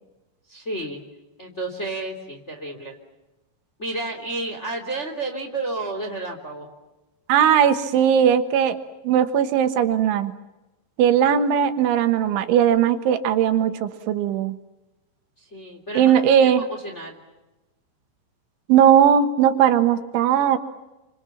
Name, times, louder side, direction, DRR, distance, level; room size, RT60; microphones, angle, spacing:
voice 1, 0.5-1.0 1.4-3.0 3.8-6.7 15.5-16.5 16.8-17.2, right 2 dB, 20° left, 3 dB, 2.6 m, -31 dB
voice 2, 7.3-8.8 9.1-10.3 11.0-14.6 16.0-16.6 18.7-20.6, right 9 dB, 75° right, 9 dB, 3.7 m, -18 dB
29.5 x 26.0 x 7.2 m, 1.1 s
omnidirectional pair, 5.6 m